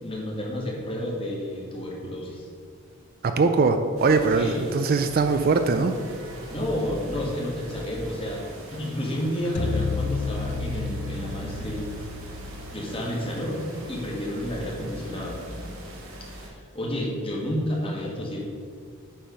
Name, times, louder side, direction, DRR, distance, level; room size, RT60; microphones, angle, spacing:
voice 1, 0.0-2.5 4.3-4.7 6.5-8.4 8.7-11.9 12.7-15.4 16.3-18.4, equal, 25° left, -2 dB, 1.5 m, -30 dB
voice 2, 3.2-5.9, right 4 dB, 40° right, 7 dB, 0.3 m, -21 dB
sound 1, 4.0-16.5, right 1 dB, 65° right, 1.4 m, -41 dB
sound 2, 9.6-13.9, left 4 dB, 45° left, 0.3 m, -32 dB
8.8 x 3.6 x 6.3 m, 2.1 s
head